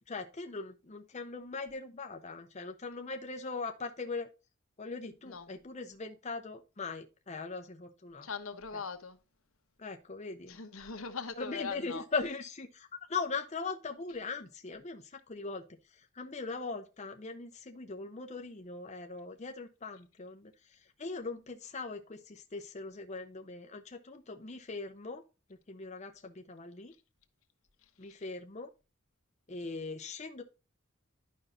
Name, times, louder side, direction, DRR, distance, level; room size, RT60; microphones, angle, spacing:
voice 1, 0.1-4.3 4.8-8.3 9.8-10.6 11.4-15.7 16.1-25.2 25.7-26.9 28.0-28.7 29.5-30.4, left 4 dB, 30° left, 0.7 m, -40 dB
voice 2, 8.2-9.2 10.5-12.0, left 5 dB, 75° left, 1.1 m, -40 dB
11.0 x 5.5 x 2.5 m
head